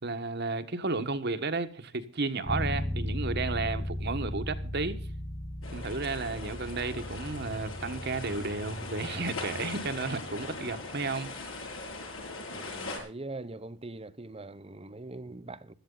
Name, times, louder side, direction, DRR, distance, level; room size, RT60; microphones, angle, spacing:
voice 1, 0.0-5.0 5.7-11.3, right 3 dB, 55° right, 1.5 m, -33 dB
sound 1, 2.5-12.2, left 1 dB, 15° left, 1.3 m, -37 dB
sound 2, 5.6-13.0, left 3 dB, 90° left, 7.6 m, -40 dB
voice 2, 12.5-15.7, right 2 dB, 30° right, 1.0 m, -42 dB
16.5 x 13.0 x 4.0 m
head